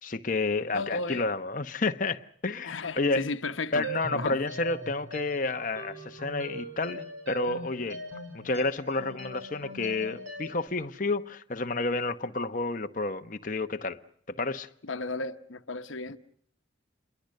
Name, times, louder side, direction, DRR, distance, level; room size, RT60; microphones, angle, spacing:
voice 1, 0.0-3.3 3.7-8.0 8.3-14.0 14.4-14.7, left 3 dB, 40° left, 0.9 m, -30 dB
voice 2, 0.7-1.2 2.6-4.4 14.8-16.2, left 3 dB, 80° left, 1.0 m, -34 dB
sound 1, 3.8-10.7, right 1 dB, 90° right, 6.5 m, -40 dB
27.5 x 22.5 x 6.5 m
head